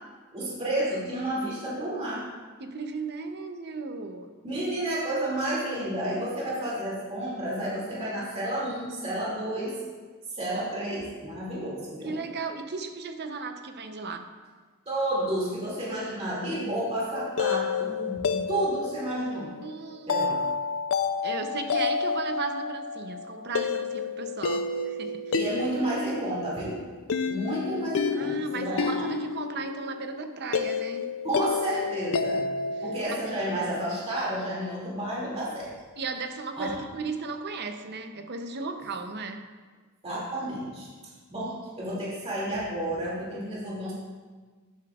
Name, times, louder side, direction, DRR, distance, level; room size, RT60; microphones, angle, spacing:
voice 1, 0.3-2.2 4.4-9.8 10.3-12.2 14.9-19.5 20.1-20.4 25.3-26.8 27.2-29.1 31.2-32.4 32.8-35.7 36.6-36.7 40.0-40.9 41.3-43.9, right 1 dB, 30° right, -7 dB, 2.5 m, -31 dB
voice 2, 2.6-4.3 12.0-14.3 19.6-20.3 21.2-25.4 28.1-31.5 32.8-33.4 36.0-39.5, right 4 dB, 50° right, 7 dB, 0.7 m, -36 dB
sound 1, 17.1-33.0, left 5 dB, 65° left, 0.4 m, -30 dB
12.0 x 9.4 x 2.4 m, 1.4 s
head